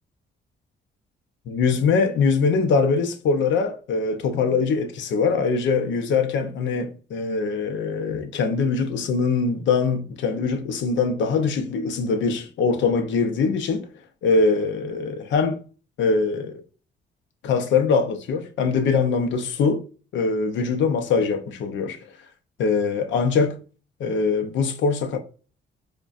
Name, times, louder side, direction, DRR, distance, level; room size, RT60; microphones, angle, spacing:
voice 1, 1.5-13.9 14.2-15.6 16.0-16.6 17.4-19.8 20.1-22.1 22.6-23.6 24.0-25.2, left 4 dB, 70° left, 0.7 m, -22 dB
4.8 x 2.3 x 2.4 m
cardioid pair, 90°, 20 cm